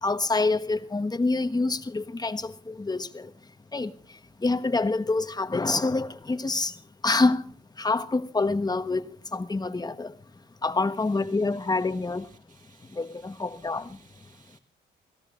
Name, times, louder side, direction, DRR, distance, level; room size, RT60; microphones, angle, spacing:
voice 1, 0.0-3.3 3.7-3.9 4.4-6.7 7.0-7.4 7.8-10.1 10.6-12.3 13.0-14.0, left 3 dB, 20° left, 1.2 m, -26 dB
voice 2, 10.9-14.6, right 5 dB, 40° right, 4.7 m, -59 dB
28.0 x 17.5 x 2.5 m
cardioid pair, 90°, 20 cm